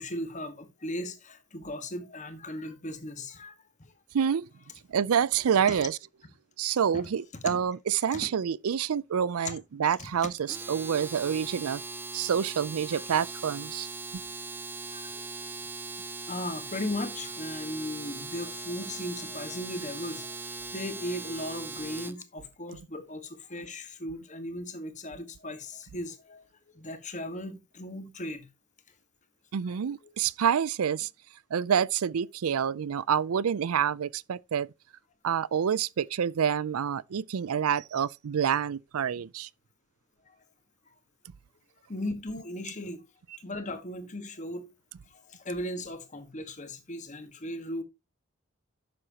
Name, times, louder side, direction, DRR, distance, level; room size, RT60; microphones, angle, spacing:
voice 1, 0.0-3.5 3.8-3.9 5.7-5.8 6.9-7.1 7.4-7.6 8.1-8.3 9.4-9.5 10.0-10.1 12.9-13.0 14.9-15.2 16.3-26.4 26.7-28.5 30.0-30.1 40.3-40.4 40.9-41.0 41.9-43.0 43.4-44.7 45.1-47.8, left 1 dB, 35° left, 1.5 m, -37 dB
voice 2, 4.1-4.5 4.9-6.0 6.6-11.8 12.1-13.9 29.5-31.1 31.5-34.7 35.2-39.5, right 8 dB, 75° right, 0.4 m, -27 dB
Domestic sounds home sounds, 10.4-22.2, right 3 dB, 10° right, 0.5 m, -40 dB
11.0 x 7.8 x 2.9 m
head